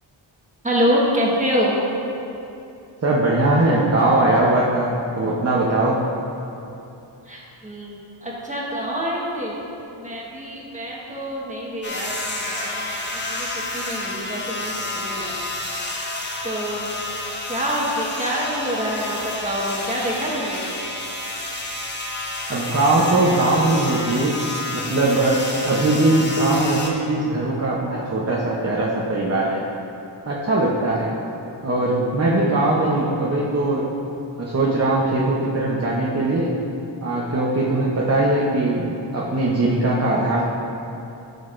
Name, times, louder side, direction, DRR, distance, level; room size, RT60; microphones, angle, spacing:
voice 1, 0.6-1.8 7.2-9.6 10.0-15.3 15.6-15.8 16.4-16.9 17.5-20.7, equal, 15° right, -4 dB, 1.3 m, -26 dB
voice 2, 3.0-4.9 5.2-6.0 22.5-24.4 24.7-29.6 30.2-31.1 31.6-33.8 34.4-36.5 37.0-40.5, right 2 dB, 30° right, -5 dB, 0.8 m, -20 dB
sound 1, 11.8-26.9, left 2 dB, 20° left, 0.9 m, -30 dB
14.0 x 6.3 x 2.5 m, 2.8 s
wide cardioid pair, 175°, 48 cm